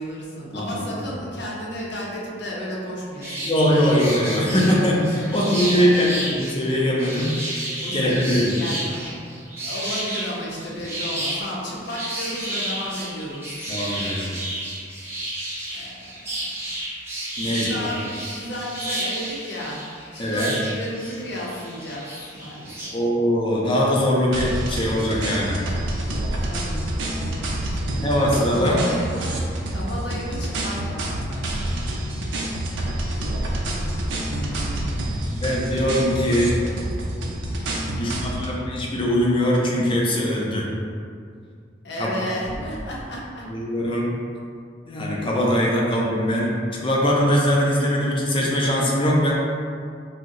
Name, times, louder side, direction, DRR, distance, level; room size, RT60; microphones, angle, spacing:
voice 1, 0.0-3.5 5.1-6.2 7.8-9.3 9.6-13.7 15.7-16.0 16.5-16.7 17.4-19.8 20.1-23.0 26.5-26.8 27.1-28.1 28.5-32.3 34.2-35.9 37.7-38.9 41.8-43.5, equal, 65° left, -4 dB, 0.6 m, -33 dB
voice 2, 0.5-0.8 3.5-7.3 7.9-8.6 13.7-14.3 17.4-17.9 20.2-20.5 22.9-25.6 27.9-28.8 35.3-36.6 37.9-40.7 42.0-42.1 43.5-44.1 44.9-49.3, equal, 30° left, -3 dB, 0.4 m, -21 dB
sound 1, 3.2-22.9, right 1 dB, 15° right, 0.6 m, -32 dB
sound 2, 24.3-38.6, right 1 dB, 90° right, 0.5 m, -28 dB
2.7 x 2.0 x 3.7 m, 2.2 s
head